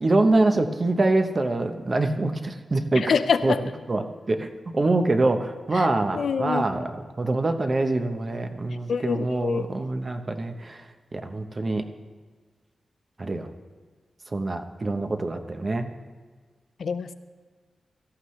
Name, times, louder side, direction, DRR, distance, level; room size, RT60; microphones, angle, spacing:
voice 1, 0.0-3.1 3.4-3.5 3.9-10.9 11.1-11.9 13.2-13.5 14.3-15.9, right 2 dB, 30° right, 7 dB, 0.9 m, -25 dB
voice 2, 3.0-3.6 5.7-5.9 6.1-6.6 8.9-9.7 16.8-17.1, left 6 dB, 75° left, 12 dB, 0.6 m, -25 dB
17.5 x 13.5 x 3.2 m, 1.5 s
wide cardioid pair, 140°, 0 cm